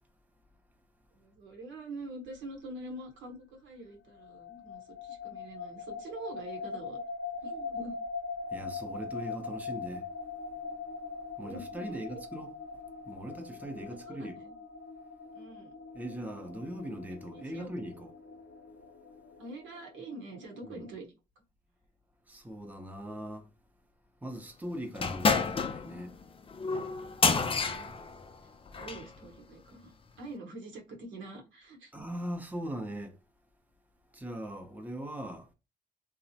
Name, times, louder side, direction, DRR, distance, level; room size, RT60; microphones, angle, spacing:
voice 1, 1.1-7.0 7.4-8.0 11.4-12.2 13.9-14.5 15.3-15.7 16.1-16.5 17.3-17.7 19.4-21.1 27.3-27.9 28.7-31.9, right 2 dB, 80° right, 0.9 m, -45 dB
sound 1, 4.1-20.9, left 4 dB, 70° left, 0.6 m, -42 dB
voice 2, 8.5-10.1 11.4-12.5 13.1-14.4 15.9-18.1 20.6-20.9 22.3-23.5 24.2-26.2 31.9-33.2 34.1-35.5, equal, 10° right, 0.6 m, -40 dB
sound 2, 25.0-29.1, left 4 dB, 30° left, 0.4 m, -30 dB
2.9 x 2.0 x 2.7 m
supercardioid pair, 60°, 20 cm